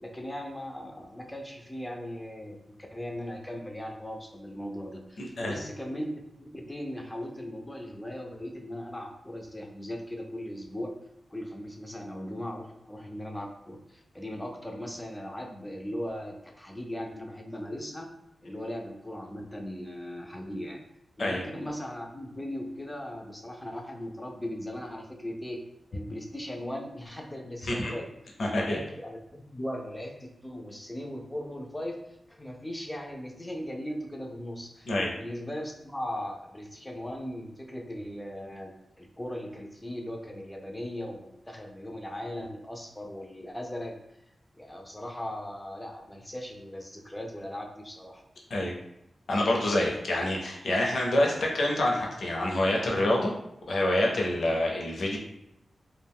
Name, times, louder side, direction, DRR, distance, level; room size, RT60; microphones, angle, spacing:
voice 1, 0.0-6.1 6.4-10.9 11.3-18.1 18.4-20.8 21.2-25.6 25.9-28.1 28.6-32.0 32.3-34.9 35.2-44.0 44.6-48.2, left 1 dB, 10° left, 2 dB, 0.4 m, -38 dB
voice 2, 5.2-5.6 21.2-21.4 27.7-27.9 28.4-28.8 34.9-35.1 48.5-48.7 49.3-53.3 53.7-55.2, left 1 dB, 65° left, -1 dB, 0.6 m, -26 dB
2.3 x 2.2 x 3.4 m, 0.81 s
wide cardioid pair, 145°, 0 cm